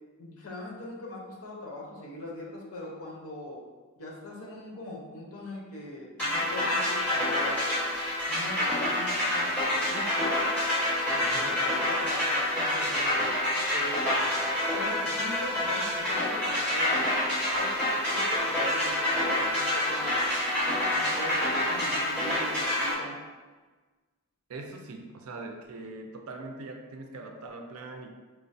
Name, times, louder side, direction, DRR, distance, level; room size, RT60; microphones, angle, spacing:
voice 1, 0.2-3.6 4.0-7.7 8.3-10.5 11.1-13.3 13.7-14.3 14.7-17.2 17.5-20.2 20.9-23.2, left 1 dB, 75° left, -2 dB, 0.8 m, -40 dB
sound 1, 6.2-22.9, left 1 dB, 5° left, 1.3 m, -27 dB
voice 2, 11.2-11.7 24.5-28.1, right 2 dB, 70° right, 3 dB, 0.4 m, -41 dB
4.3 x 2.1 x 2.6 m, 1.3 s
head